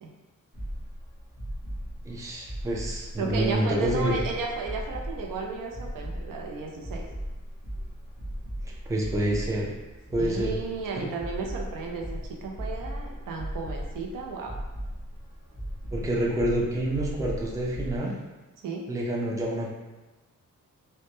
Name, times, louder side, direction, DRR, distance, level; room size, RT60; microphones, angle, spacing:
sound 1, 0.5-18.0, equal, 35° right, 0.8 m, -37 dB
voice 1, 2.0-4.2 8.9-9.7 10.1-10.5 10.9-11.1 15.9-18.2 18.9-19.7, right 1 dB, 10° right, -3 dB, 0.3 m, -28 dB
voice 2, 3.2-7.1 10.2-14.5 18.6-18.9, right 4 dB, 90° right, 0 dB, 0.5 m, -34 dB
2.1 x 2.1 x 2.9 m, 1.1 s
wide cardioid pair, 130°, 32 cm